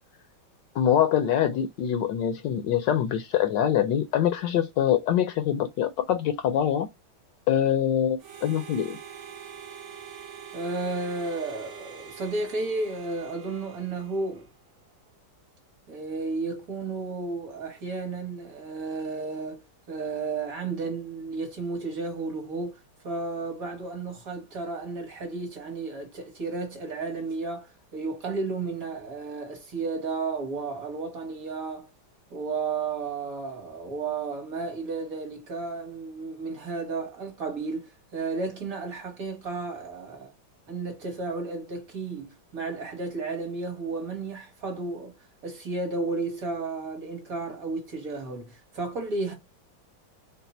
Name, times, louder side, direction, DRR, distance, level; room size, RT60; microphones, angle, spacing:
voice 1, 0.7-6.9 7.5-9.0, left 10 dB, 75° left, 1.1 m, -24 dB
Harmonica, 8.2-14.6, right 8 dB, 75° right, 0.6 m, -45 dB
voice 2, 10.5-14.5 15.9-31.9 32.3-40.3 40.7-45.2 45.4-49.3, right 3 dB, 50° right, 1.3 m, -33 dB
4.0 x 2.1 x 4.0 m
omnidirectional pair, 2.2 m